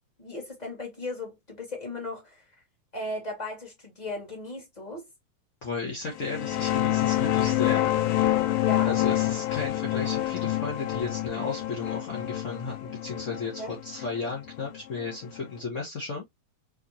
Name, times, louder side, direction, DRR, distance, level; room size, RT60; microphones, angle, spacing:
voice 1, 0.2-2.4 2.9-5.0 8.6-8.9 13.6-13.7, left 2 dB, 15° left, 1.9 m, -36 dB
voice 2, 5.6-7.9 8.8-16.2, left 4 dB, 40° left, 1.1 m, -34 dB
sound 1, 6.2-15.5, left 14 dB, 75° left, 1.5 m, -27 dB
4.3 x 4.0 x 2.9 m
omnidirectional pair, 3.5 m